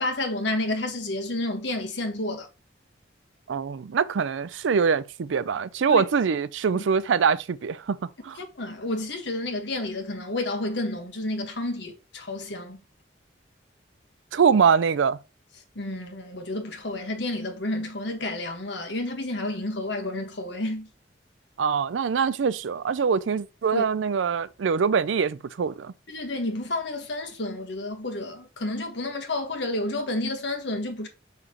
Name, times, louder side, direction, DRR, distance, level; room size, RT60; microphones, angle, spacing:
voice 1, 0.0-2.5 5.9-6.0 6.7-6.8 8.4-12.8 15.7-20.9 23.7-23.8 26.1-31.1, left 2 dB, 75° left, 1.5 m, -30 dB
voice 2, 3.5-8.0 8.2-8.4 14.3-15.2 21.6-25.9, right 6 dB, 90° right, 0.4 m, -23 dB
6.4 x 5.9 x 3.0 m
head